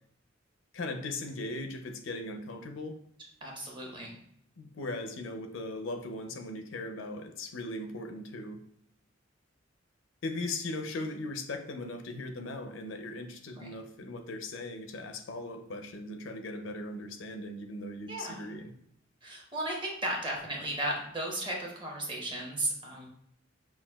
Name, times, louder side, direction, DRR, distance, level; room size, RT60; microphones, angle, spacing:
voice 1, 0.7-3.0 4.6-8.6 10.2-18.7, left 2 dB, 75° left, 7 dB, 0.5 m, -38 dB
voice 2, 3.4-4.1 13.6-13.7 18.1-18.6 19.2-23.1, right 1 dB, 25° right, -1 dB, 0.9 m, -35 dB
5.9 x 2.3 x 2.2 m, 0.72 s
head